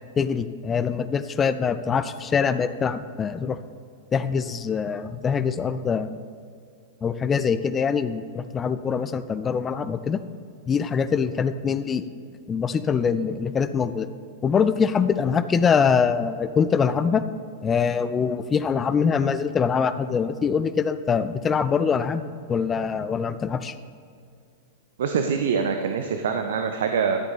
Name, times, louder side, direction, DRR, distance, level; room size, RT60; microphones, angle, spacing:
voice 1, 0.2-3.6 4.1-6.1 7.0-10.2 10.7-12.0 12.5-14.1 14.4-17.2 17.6-23.7, left 6 dB, 20° left, 12 dB, 0.5 m, -24 dB
voice 2, 25.0-27.2, right 6 dB, 60° right, 6 dB, 0.6 m, -24 dB
12.0 x 8.0 x 4.1 m, 2.4 s
figure-of-eight pair, 95°, 0 cm